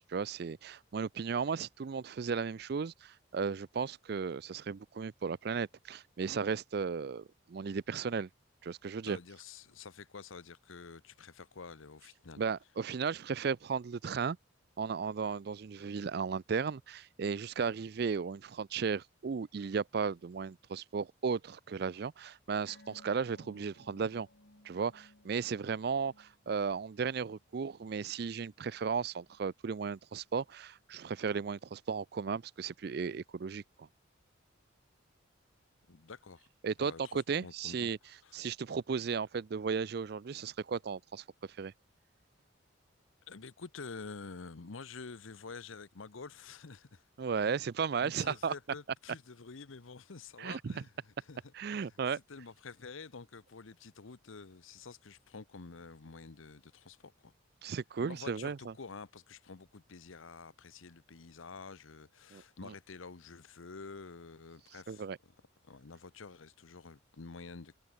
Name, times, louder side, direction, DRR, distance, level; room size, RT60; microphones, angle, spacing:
voice 1, 0.1-8.3 8.6-9.2 12.4-14.4 14.8-24.3 24.6-33.9 36.6-38.0 38.3-41.2 41.6-41.7 47.2-48.5 50.4-50.7 51.5-52.2 57.6-58.7 62.3-62.7 64.9-65.2, right 5 dB, 50° right, 0.4 m, -35 dB
voice 2, 9.0-12.4 35.9-36.5 36.8-37.9 38.2-38.4 43.3-47.0 47.4-47.6 48.0-57.3 58.0-65.4 65.6-67.7, left 4 dB, 80° left, 0.9 m, -49 dB
sound 1, 22.7-29.5 29.7-30.0 30.3-30.4, left 2 dB, 55° left, 2.2 m, -62 dB
head